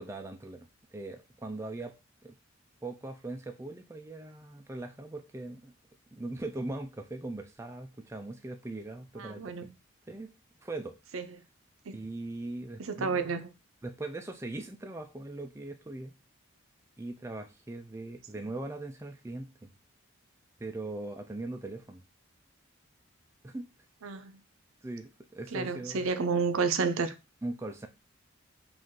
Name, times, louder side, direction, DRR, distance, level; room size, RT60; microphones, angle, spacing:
voice 1, 0.0-2.0 2.2-2.4 2.8-5.7 6.1-9.7 10.1-10.3 10.6-11.0 11.9-13.3 13.8-16.1 17.0-19.7 20.6-22.0 23.4-23.7 24.8-26.1 27.4-27.9, right 2 dB, 15° right, 0.3 m, -40 dB
voice 2, 9.2-9.7 11.1-11.3 11.9-12.0 12.8-13.5 24.0-24.4 25.5-27.1, right 5 dB, 80° right, 0.6 m, -30 dB
5.3 x 2.5 x 3.6 m
head